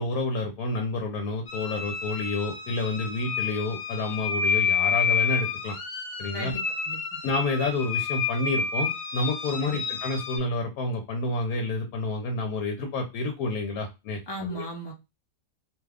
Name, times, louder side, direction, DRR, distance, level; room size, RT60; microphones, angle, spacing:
voice 1, 0.0-5.8 6.2-6.5 7.2-14.6, left 2 dB, 85° left, 4 dB, 1.1 m, -29 dB
sound 1, 1.5-10.4, left 5 dB, 60° left, 1.0 m, -29 dB
voice 2, 6.3-7.0 9.7-9.8 14.3-14.9, equal, 25° left, -1 dB, 0.5 m, -36 dB
2.7 x 2.4 x 3.3 m, 0.25 s
omnidirectional pair, 1.5 m